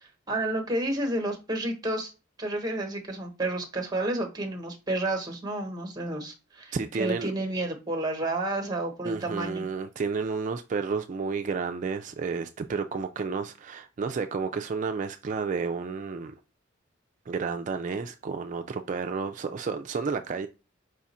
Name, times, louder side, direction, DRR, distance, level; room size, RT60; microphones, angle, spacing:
voice 1, 0.0-2.1 2.4-9.6, right 1 dB, 20° right, 0.9 m, -31 dB
voice 2, 6.7-7.3 9.0-16.4 17.3-20.5, right 5 dB, 40° right, 0.3 m, -31 dB
5.0 x 2.4 x 4.1 m
head